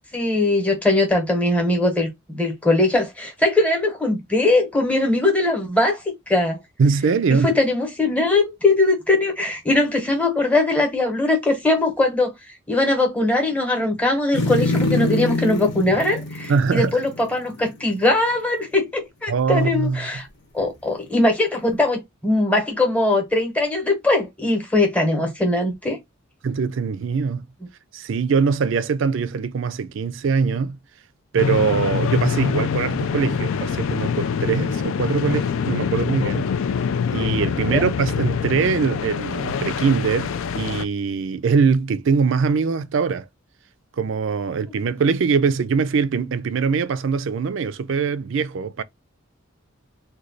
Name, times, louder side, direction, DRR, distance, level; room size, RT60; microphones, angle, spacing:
voice 1, 0.1-6.6 7.3-12.3 12.7-20.3 20.5-26.0 37.7-37.9, left 2 dB, 5° left, 0.9 m, -20 dB
voice 2, 6.8-7.6 16.5-17.0 19.3-20.1 26.4-27.4 27.9-30.8 31.3-36.5 37.1-43.3 44.0-48.8, right 5 dB, 65° right, 0.4 m, -22 dB
sound 1, 14.3-17.7 18.0-18.1, left 2 dB, 50° left, 0.9 m, -25 dB
sound 2, 31.4-40.9, left 6 dB, 70° left, 0.4 m, -24 dB
3.1 x 2.2 x 3.8 m
head